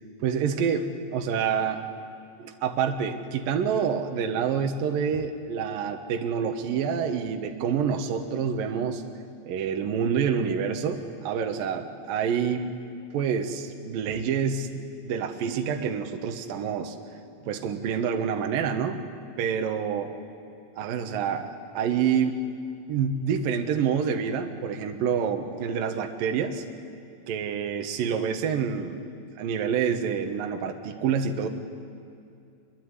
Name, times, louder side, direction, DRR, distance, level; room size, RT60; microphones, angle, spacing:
voice 1, 0.2-1.8 2.4-9.0 9.5-12.7 13.1-14.7 15.0-17.0 17.5-19.0 19.4-20.1 20.8-22.4 22.9-26.6 27.3-29.0 29.4-31.5, right 7 dB, 70° right, 5 dB, 3.0 m, -27 dB
26.0 x 22.5 x 9.6 m, 2.5 s
omnidirectional pair, 4.3 m